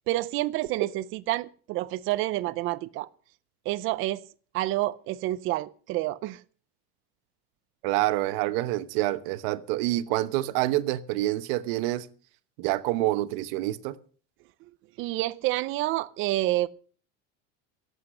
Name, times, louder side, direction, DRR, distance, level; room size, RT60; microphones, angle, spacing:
voice 1, 0.1-3.1 3.7-4.2 4.5-6.4 15.0-16.7, right 17 dB, 40° right, 0.5 m, -28 dB
voice 2, 7.8-12.1 12.6-14.0, right 16 dB, 70° right, 1.1 m, -27 dB
17.0 x 8.1 x 6.4 m
cardioid pair, 175°, 31 cm